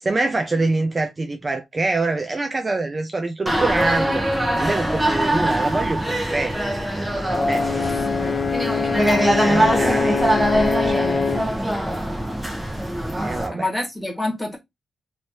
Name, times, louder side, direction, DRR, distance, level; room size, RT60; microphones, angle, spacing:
voice 1, 0.0-4.3 4.6-6.6 7.5-7.7 8.9-9.1 9.3-11.5 13.2-13.7, right 3 dB, 30° right, 0.5 m, -25 dB
sound 1, 3.5-13.5, right 1 dB, 15° right, 1.1 m, -22 dB
Brass instrument, 7.3-11.6, left 5 dB, 60° left, 0.5 m, -24 dB
voice 2, 7.8-8.3 13.5-14.6, left 2 dB, 5° left, 1.6 m, -28 dB
3.1 x 3.1 x 2.7 m
cardioid pair, 100°, 0 cm